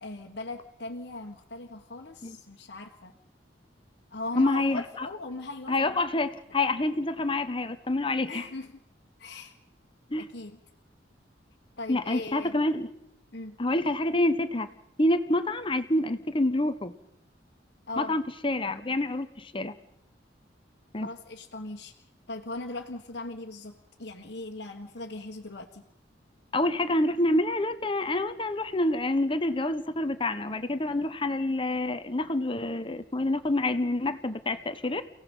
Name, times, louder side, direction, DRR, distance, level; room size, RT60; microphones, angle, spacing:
voice 1, 0.0-3.1 4.1-6.0 8.2-8.8 9.2-9.6 10.2-10.6 11.8-12.5 13.3-13.6 17.9-18.2 21.0-21.9 22.3-25.8, left 2 dB, 60° left, -3 dB, 1.6 m, -39 dB
voice 2, 4.4-5.1 5.7-8.4 10.1-10.3 11.9-12.9 13.6-14.7 15.0-16.9 18.0-19.7 20.9-21.1 26.5-35.0, left 2 dB, 30° left, 10 dB, 1.0 m, -27 dB
29.5 x 17.0 x 5.5 m, 0.80 s
head